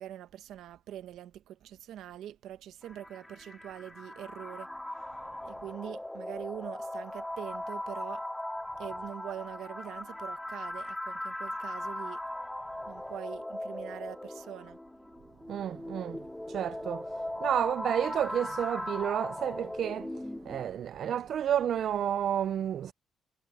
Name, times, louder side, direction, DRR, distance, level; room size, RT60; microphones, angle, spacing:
voice 1, 0.0-4.7 5.4-8.2 8.8-12.2 12.9-14.8, right 11 dB, 80° right, 1.5 m, -43 dB
sound 1, 2.8-20.8, left 1 dB, 10° left, 3.3 m, -39 dB
voice 2, 15.5-22.9, right 9 dB, 65° right, 0.5 m, -31 dB
cardioid pair, 90°, 0 cm